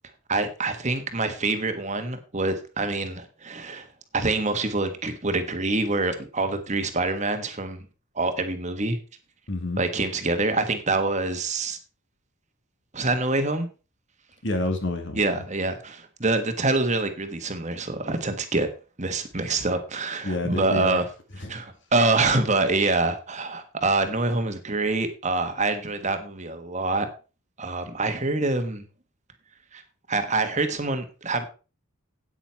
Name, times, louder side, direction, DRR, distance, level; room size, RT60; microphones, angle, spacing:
voice 1, 0.3-3.9 4.1-7.8 8.1-9.0 9.8-11.8 12.9-13.7 15.2-18.7 19.0-21.0 21.5-27.1 27.6-28.8 29.7-29.8 30.1-31.4, right 3 dB, 35° right, 8 dB, 1.4 m, -26 dB
voice 2, 9.5-9.8 14.4-15.5 20.2-21.0 21.4-21.5, left 2 dB, 60° left, 6 dB, 2.2 m, -28 dB
9.1 x 8.9 x 4.6 m, 0.34 s
head